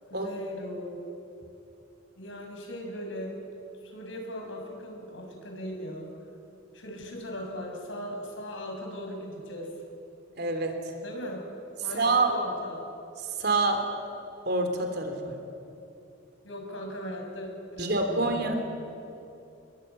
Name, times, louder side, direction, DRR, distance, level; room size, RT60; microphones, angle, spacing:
voice 1, 0.1-1.0 2.2-3.4 3.8-6.1 6.7-9.7 11.0-11.4 11.8-12.8 16.4-18.5, equal, 80° left, 2 dB, 6.4 m, -38 dB
voice 2, 10.4-10.8 11.9-12.4 13.4-13.9 14.5-15.3 17.8-18.6, right 3 dB, 55° right, 5 dB, 3.7 m, -26 dB
26.0 x 22.0 x 9.4 m, 2.8 s
head